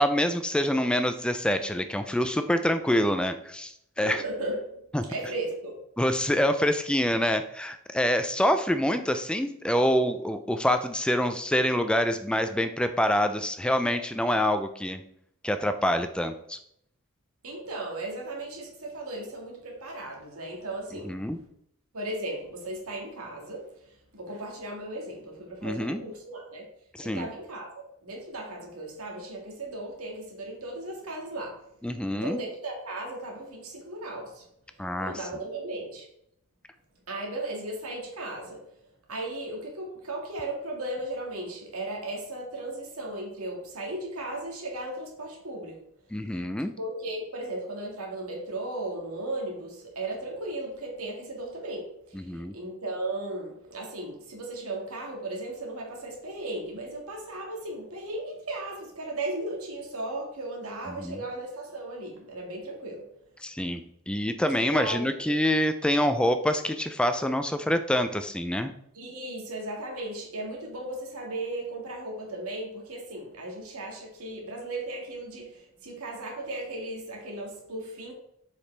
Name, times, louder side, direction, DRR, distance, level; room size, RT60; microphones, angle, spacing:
voice 1, 0.0-4.2 4.9-5.0 6.0-15.0 15.4-16.6 21.0-21.4 25.6-26.0 26.9-27.3 31.8-32.4 34.8-35.2 46.1-46.7 52.1-52.5 60.9-61.2 63.4-68.7, equal, 5° left, 9 dB, 0.3 m, -26 dB
voice 2, 4.0-4.8 5.1-5.7 17.4-21.1 21.9-23.6 24.1-26.7 27.0-31.6 32.1-34.4 35.0-36.1 37.1-38.6 39.1-45.8 46.8-63.0 64.6-65.3 68.9-78.1, right 2 dB, 80° right, 0 dB, 1.8 m, -36 dB
7.0 x 5.0 x 3.3 m, 0.72 s
head